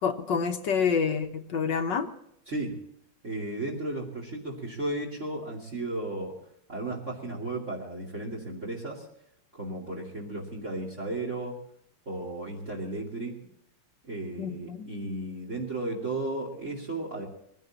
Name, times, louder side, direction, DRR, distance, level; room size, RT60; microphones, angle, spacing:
voice 1, 0.0-2.1 14.4-14.9, left 6 dB, 60° left, 6 dB, 1.7 m, -28 dB
voice 2, 2.5-2.8 3.2-6.3 6.7-9.0 9.5-11.6 12.1-13.4 14.1-17.3, right 2 dB, 35° right, -2 dB, 2.8 m, -34 dB
22.5 x 16.0 x 2.9 m, 0.74 s
omnidirectional pair, 2.4 m